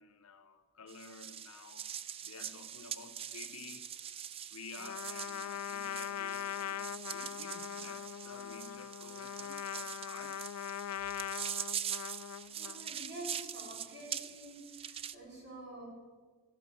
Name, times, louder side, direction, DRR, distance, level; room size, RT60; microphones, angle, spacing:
voice 1, 0.0-1.9 2.2-3.9 4.5-10.4, left 4 dB, 75° left, 0.9 m, -52 dB
sound 1, 0.9-15.2, right 9 dB, 25° right, 0.3 m, -43 dB
Trumpet, 4.8-12.9, left 10 dB, 90° left, 0.3 m, -41 dB
voice 2, 12.5-15.9, right 1 dB, 50° right, 5.0 m, -48 dB
14.0 x 11.0 x 7.0 m
head